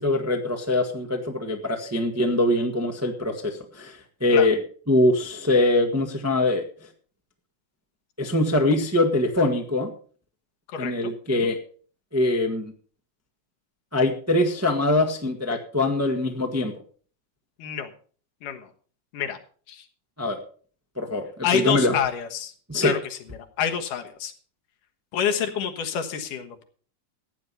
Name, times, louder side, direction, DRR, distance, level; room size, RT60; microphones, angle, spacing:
voice 1, 0.0-4.6 4.9-6.9 8.2-9.9 10.8-11.6 12.1-12.7 13.9-16.7 20.2-20.4 21.0-21.2 21.5-21.9 22.7-22.9, left 2 dB, 10° right, 3 dB, 0.7 m, -23 dB
voice 2, 10.7-11.5 17.6-17.9 18.4-18.7 19.1-19.4 19.7-19.9 21.4-22.5 22.8-24.3 25.1-26.6, left 8 dB, 85° left, 6 dB, 3.0 m, -28 dB
15.0 x 9.3 x 5.5 m, 0.43 s
omnidirectional pair, 3.6 m